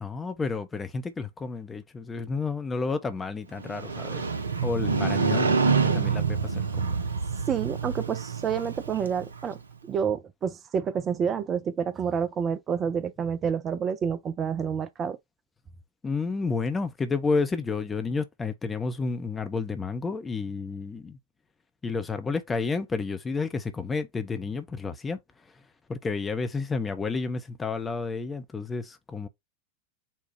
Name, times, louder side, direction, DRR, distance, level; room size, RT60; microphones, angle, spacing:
voice 1, 0.0-4.3 4.6-6.9 16.0-21.2 21.8-25.2 25.9-29.3, left 4 dB, 15° left, 0.7 m, -31 dB
Motorcycle, 3.6-9.5, right 5 dB, 75° right, 0.5 m, -27 dB
voice 2, 7.5-15.2, right 7 dB, 25° right, 0.4 m, -29 dB
4.3 x 2.2 x 4.5 m
figure-of-eight pair, 90°, 0 cm